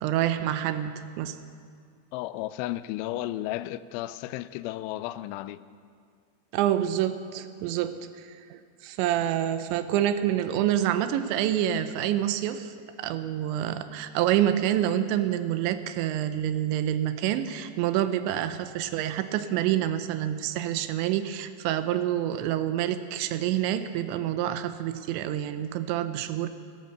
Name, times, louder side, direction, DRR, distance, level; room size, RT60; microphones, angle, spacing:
voice 1, 0.0-1.4 6.5-26.5, right 11 dB, 80° right, 2.9 m, -27 dB
voice 2, 2.1-5.6, left 15 dB, 90° left, 3.0 m, -33 dB
17.0 x 12.5 x 6.5 m
omnidirectional pair, 5.4 m